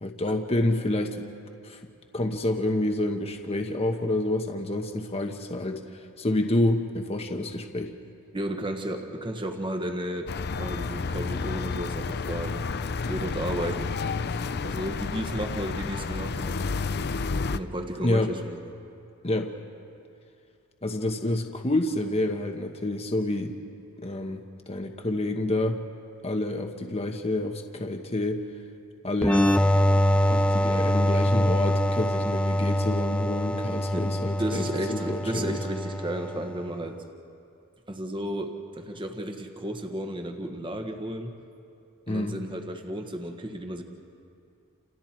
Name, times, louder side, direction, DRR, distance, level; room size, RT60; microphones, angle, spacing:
voice 1, 0.0-1.3 1.6-1.8 2.1-5.8 6.2-7.9 18.0-18.3 19.2-19.5 20.8-23.5 24.0-25.8 26.2-28.4 29.0-29.5 30.3-35.6 42.1-42.4, left 1 dB, 30° left, 4 dB, 1.2 m, -28 dB
voice 2, 8.3-10.3 10.6-12.7 13.1-13.9 14.6-16.6 17.5-18.6 33.9-34.1 34.4-37.0 37.9-41.3 42.1-43.8, right 1 dB, 20° right, 4 dB, 1.4 m, -33 dB
sound 1, 10.3-17.6, left 4 dB, 50° left, 0.6 m, -30 dB
sound 2, 29.2-36.7, left 1 dB, 5° left, 0.6 m, -24 dB
29.5 x 28.5 x 4.5 m, 2.5 s
head